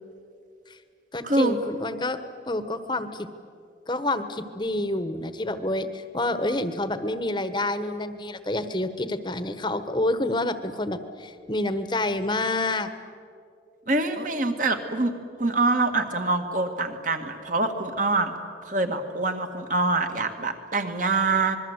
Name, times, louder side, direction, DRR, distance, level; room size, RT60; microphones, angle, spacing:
voice 1, 1.1-2.2 2.5-3.3 3.9-12.9, left 2 dB, 25° left, 11 dB, 1.2 m, -28 dB
voice 2, 13.9-18.3 18.6-21.6, right 3 dB, 45° right, 6 dB, 2.0 m, -25 dB
26.5 x 21.5 x 8.1 m, 2.4 s
head